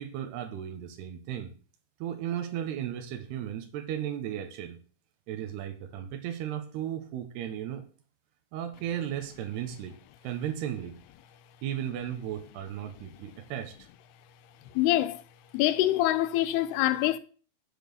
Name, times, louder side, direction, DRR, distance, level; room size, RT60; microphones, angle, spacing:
voice 1, 0.0-1.5 2.0-4.8 5.3-7.9 8.5-10.0 10.2-11.0 11.6-13.9, right 10 dB, 85° right, 3.3 m, -35 dB
voice 2, 14.8-15.2 15.5-17.2, left 14 dB, 85° left, 2.8 m, -25 dB
8.3 x 7.4 x 6.8 m
omnidirectional pair, 4.6 m